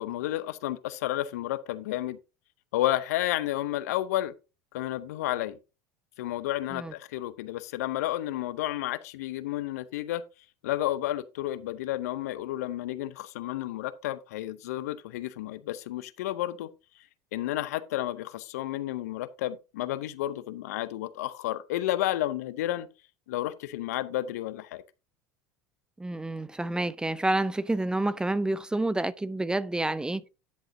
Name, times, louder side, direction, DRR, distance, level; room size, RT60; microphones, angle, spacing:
voice 1, 0.0-2.2 2.7-4.3 4.7-5.6 6.2-10.3 10.6-16.7 17.3-22.9 23.3-24.8, left 14 dB, 70° left, 0.7 m, -31 dB
voice 2, 26.0-30.3, right 2 dB, 10° right, 0.5 m, -29 dB
10.5 x 7.7 x 2.7 m
hypercardioid pair, 75°, 9 cm